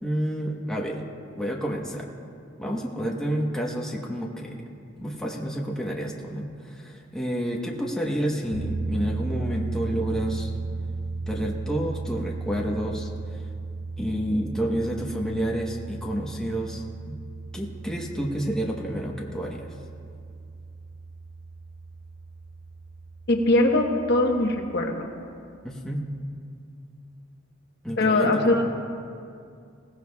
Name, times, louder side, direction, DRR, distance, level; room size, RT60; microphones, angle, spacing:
voice 1, 0.0-1.0 1.4-2.2 2.6-4.6 5.0-10.5 11.3-13.5 14.0-17.1 17.5-19.8 25.6-26.1 27.8-28.7, equal, 5° left, -2 dB, 1.0 m, -29 dB
sound 1, 8.5-24.9, right 3 dB, 65° right, 0.6 m, -35 dB
voice 2, 23.3-25.1 28.0-28.6, left 2 dB, 55° left, 2 dB, 1.1 m, -21 dB
20.5 x 16.5 x 2.3 m, 2.4 s
head